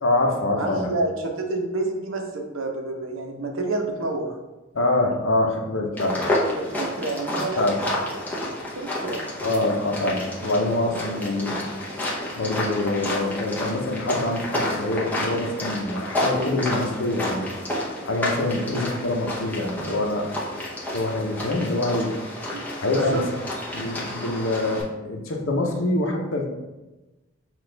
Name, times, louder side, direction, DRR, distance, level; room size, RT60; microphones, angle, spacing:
voice 1, 0.0-1.0 4.7-6.2 7.6-7.8 9.4-11.6 12.3-17.5 18.0-20.3 20.9-22.1 22.8-23.3 23.7-26.5, left 2 dB, 75° left, 2 dB, 0.7 m, -25 dB
voice 2, 0.6-4.3 6.6-9.2 22.5-22.6 22.9-23.2, right 2 dB, 75° right, 2 dB, 0.7 m, -29 dB
sound 1, 6.0-24.8, left 1 dB, 10° left, 0.7 m, -30 dB
5.9 x 2.4 x 3.3 m, 1.1 s
head